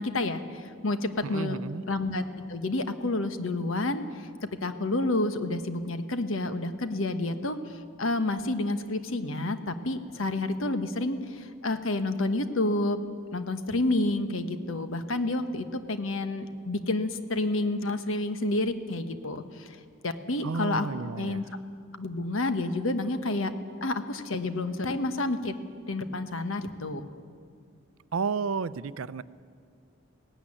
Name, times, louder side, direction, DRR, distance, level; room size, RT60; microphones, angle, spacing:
voice 1, 0.0-1.6 1.9-2.2 2.5-13.0 13.3-19.8 20.0-20.9 21.2-21.4 21.9-23.5 23.8-25.6 25.9-27.1, left 2 dB, 75° left, 9 dB, 1.2 m, -29 dB
voice 2, 1.2-1.8 20.4-21.4 28.1-29.2, right 4 dB, 80° right, 16 dB, 0.5 m, -32 dB
17.0 x 16.0 x 10.0 m, 2.2 s
head